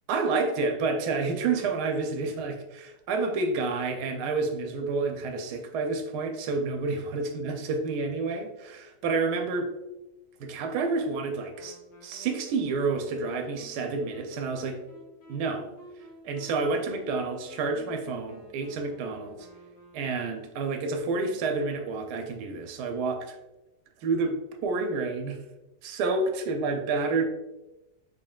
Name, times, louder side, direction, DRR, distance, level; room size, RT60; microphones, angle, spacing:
voice 1, 0.1-9.7 10.4-14.8 15.3-15.7 16.2-19.5 19.9-23.4 24.0-25.4 25.8-27.3, right 3 dB, 90° right, 5 dB, 1.1 m, -29 dB
Wind instrument woodwind instrument, 11.5-20.5, left 1 dB, 65° left, 1.1 m, -51 dB
3.7 x 3.7 x 2.3 m, 0.99 s
omnidirectional pair, 1.7 m